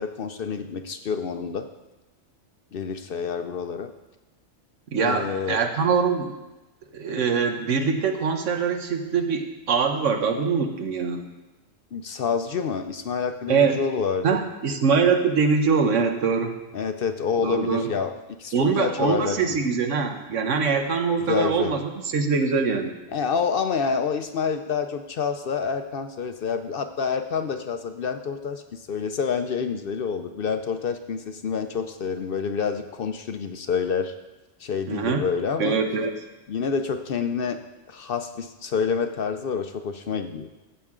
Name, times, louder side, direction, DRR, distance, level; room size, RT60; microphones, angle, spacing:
voice 1, 0.0-1.7 2.7-3.9 5.0-5.6 11.9-14.3 16.7-18.1 18.4-19.6 21.2-21.7 23.1-34.1 34.6-35.8 36.5-37.6 37.9-40.5, left 6 dB, 60° left, 8 dB, 0.7 m, -28 dB
voice 2, 4.9-6.4 6.9-11.2 13.5-13.8 14.2-16.5 17.4-17.9 18.5-21.8 22.1-22.9 34.9-35.2 35.6-36.1, right 5 dB, 80° right, 5 dB, 1.3 m, -23 dB
14.0 x 7.8 x 3.7 m, 1.1 s
omnidirectional pair, 1.3 m